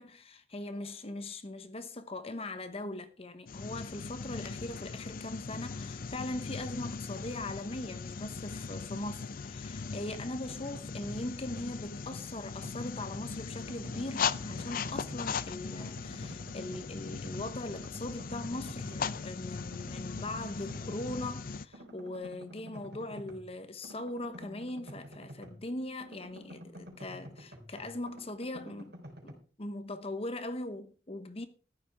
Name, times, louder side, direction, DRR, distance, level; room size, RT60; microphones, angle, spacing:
voice 1, 0.0-28.9 29.2-31.5, left 2 dB, 35° left, 1.0 m, -40 dB
sound 1, 3.5-21.6, left 5 dB, 55° left, 0.5 m, -39 dB
sound 2, 10.2-11.2 11.6-13.3 13.7-15.4 15.7-17.5 17.7-19.3 19.7-21.3 21.7-25.7 26.0-29.3, equal, 70° right, 3.9 m, -50 dB
14.0 x 12.0 x 3.5 m
head